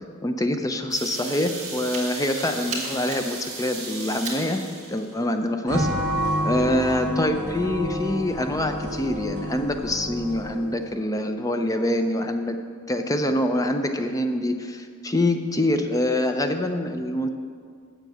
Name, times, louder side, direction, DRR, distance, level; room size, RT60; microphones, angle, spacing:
voice 1, 0.2-4.6 4.9-5.9 6.4-12.6 12.9-17.3, left 1 dB, 15° left, 6 dB, 0.6 m, -25 dB
sound 1, 0.9-5.3, right 3 dB, 35° right, 2.2 m, -34 dB
sound 2, 5.7-10.8, equal, 55° right, 1.9 m, -29 dB
7.4 x 6.8 x 7.9 m, 2.1 s
head